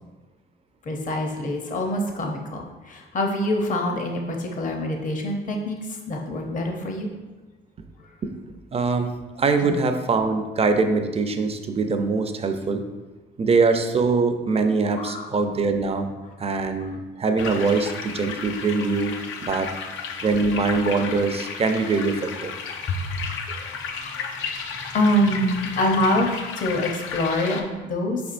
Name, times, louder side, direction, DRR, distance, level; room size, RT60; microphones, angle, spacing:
voice 1, 0.9-7.1 9.6-9.8 14.9-15.4 16.5-16.9 22.9-24.3 24.9-28.2, left 1 dB, 40° left, 2 dB, 0.7 m, -26 dB
voice 2, 8.7-9.1 9.4-12.8 13.4-16.1 16.4-19.7 20.2-22.5, right 4 dB, 30° right, 6 dB, 0.5 m, -23 dB
sound 1, 17.4-27.6, left 6 dB, 85° left, 0.5 m, -34 dB
4.9 x 4.4 x 2.5 m, 1.2 s
cardioid pair, 90°, 20 cm